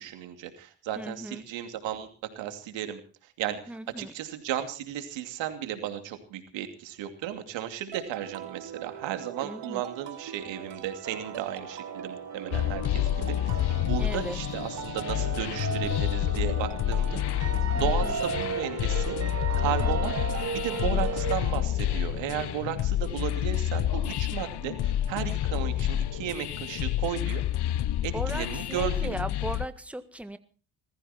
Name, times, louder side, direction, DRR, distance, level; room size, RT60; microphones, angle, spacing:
voice 1, 0.0-2.1 2.4-3.0 3.4-17.2 17.7-19.2 19.6-20.1 20.5-27.4 28.0-29.1, right 11 dB, 85° right, 7 dB, 2.7 m, -34 dB
voice 2, 0.9-1.4 3.7-4.1 9.4-9.9 14.0-14.4 17.7-18.2 19.8-20.2 28.1-30.4, right 1 dB, 5° right, 10 dB, 1.8 m, -38 dB
sound 1, 7.9-21.6, right 10 dB, 70° right, 2.5 m, -42 dB
sound 2, 11.0-21.3, right 5 dB, 40° right, 4.0 m, -36 dB
sound 3, 12.5-29.7, left 12 dB, 65° left, 1.0 m, -29 dB
20.5 x 15.0 x 4.4 m, 0.39 s
supercardioid pair, 60°, 43 cm